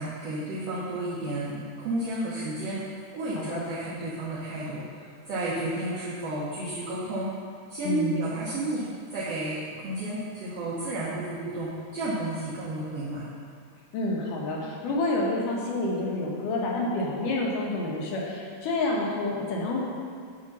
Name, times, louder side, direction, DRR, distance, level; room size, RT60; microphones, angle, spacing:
voice 1, 0.0-2.8 3.1-7.3 7.7-13.2, right 1 dB, 65° right, -7 dB, 1.6 m, -32 dB
voice 2, 7.8-8.2 13.9-19.8, left 2 dB, 75° left, -3 dB, 2.5 m, -28 dB
8.7 x 3.6 x 6.0 m, 2.2 s
omnidirectional pair, 3.9 m